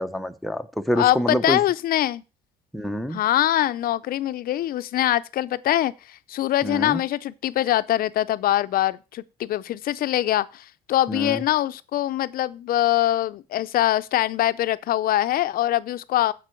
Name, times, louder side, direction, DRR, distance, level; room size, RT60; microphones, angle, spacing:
voice 1, 0.0-1.6 2.7-3.2 6.6-7.0 11.1-11.4, equal, ahead, 0.8 m, -26 dB
voice 2, 1.0-2.2 3.1-16.3, left 13 dB, 60° left, 0.6 m, -23 dB
15.0 x 5.4 x 4.5 m
cardioid pair, 110°, 17 cm